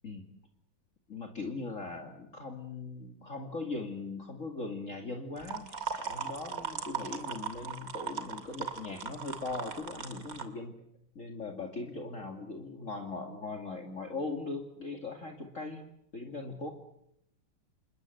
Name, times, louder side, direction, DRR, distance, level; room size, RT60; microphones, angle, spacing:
voice 1, 1.1-10.7 11.1-15.9 16.1-16.7, left 3 dB, 40° left, 3 dB, 2.7 m, -39 dB
sound 1, 5.4-10.4, right 6 dB, 45° right, 3.0 m, -38 dB
28.5 x 21.0 x 7.9 m, 0.75 s
omnidirectional pair, 2.2 m